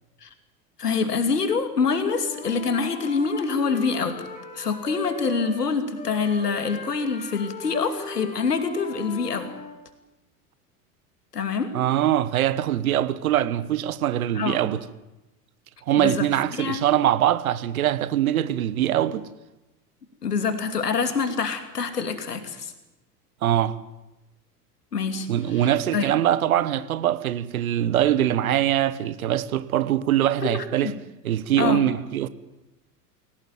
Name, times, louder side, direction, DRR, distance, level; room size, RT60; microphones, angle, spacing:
voice 1, 0.8-4.2 4.5-9.5 11.3-11.7 14.3-14.8 16.0-16.3 16.6-16.8 20.2-22.7 24.9-26.1 30.4-30.9 31.6-31.9, left 5 dB, 75° left, 2.8 m, -26 dB
Wind instrument woodwind instrument, 1.9-5.6 5.9-9.8, left 3 dB, 15° left, 5.7 m, -39 dB
voice 2, 11.7-14.8 15.9-19.3 23.4-23.8 25.3-30.9 31.2-32.3, right 12 dB, 60° right, 1.3 m, -23 dB
22.0 x 18.0 x 9.3 m
figure-of-eight pair, 85°, 47 cm